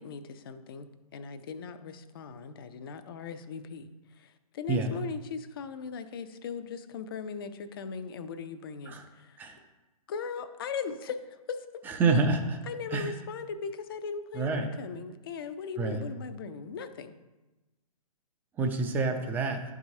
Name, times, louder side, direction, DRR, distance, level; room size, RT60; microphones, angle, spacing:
voice 1, 0.0-9.4 10.1-12.0 12.6-17.2, left 6 dB, 40° left, 10 dB, 0.5 m, -39 dB
voice 2, 11.9-12.6 12.9-13.1 14.3-14.7 15.8-16.0 18.6-19.6, right 3 dB, 10° right, 5 dB, 0.5 m, -27 dB
11.5 x 4.8 x 2.8 m, 1.1 s
figure-of-eight pair, 125°, 19 cm